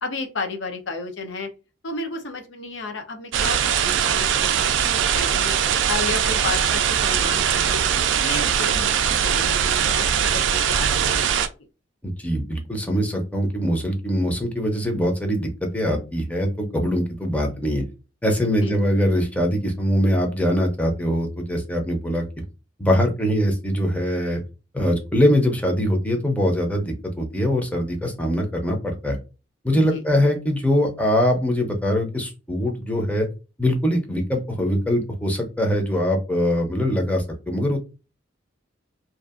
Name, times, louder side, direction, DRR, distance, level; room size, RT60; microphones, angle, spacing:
voice 1, 0.0-1.5 1.8-5.5 5.9-11.5 18.6-18.7 29.9-30.0, left 3 dB, 80° left, 5 dB, 0.7 m, -33 dB
sound 1, 3.3-11.5, right 8 dB, 70° right, 0.3 m, -21 dB
voice 2, 12.0-17.8 18.2-22.2 22.8-24.4 24.7-29.2 29.6-33.3 33.6-37.8, equal, 10° left, 2 dB, 0.6 m, -22 dB
2.6 x 2.4 x 2.4 m, 0.30 s
head